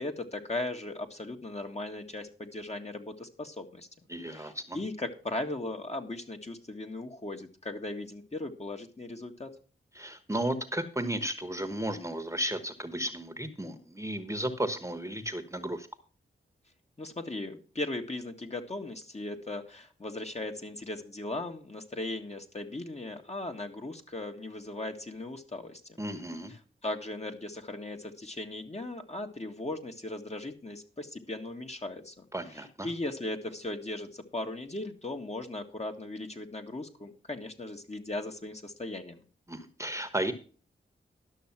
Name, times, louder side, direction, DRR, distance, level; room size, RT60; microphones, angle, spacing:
voice 1, 0.0-3.9 4.3-9.5 17.0-26.0 26.8-32.3 32.5-39.2, left 2 dB, 30° left, 4 dB, 1.7 m, -38 dB
voice 2, 4.1-4.8 9.9-15.9 26.0-26.5 32.3-32.9 39.5-40.3, right 1 dB, 15° right, 9 dB, 1.3 m, -34 dB
11.5 x 6.3 x 5.9 m, 0.39 s
cardioid pair, 45°, 21 cm